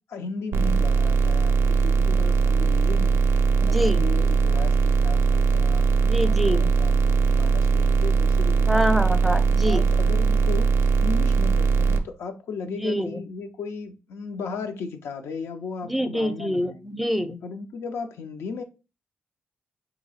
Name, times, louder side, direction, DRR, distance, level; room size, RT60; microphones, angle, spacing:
voice 1, 0.1-3.2 3.7-9.0 9.6-10.7 11.0-16.8 17.4-18.6, left 5 dB, 80° left, 0.5 m, -36 dB
sound 1, 0.5-12.0, right 5 dB, 70° right, 0.4 m, -20 dB
voice 2, 3.6-4.1 6.0-6.7 8.7-9.8 12.7-13.2 15.9-17.4, equal, ahead, 0.4 m, -25 dB
2.8 x 2.3 x 4.1 m
cardioid pair, 65°, 4 cm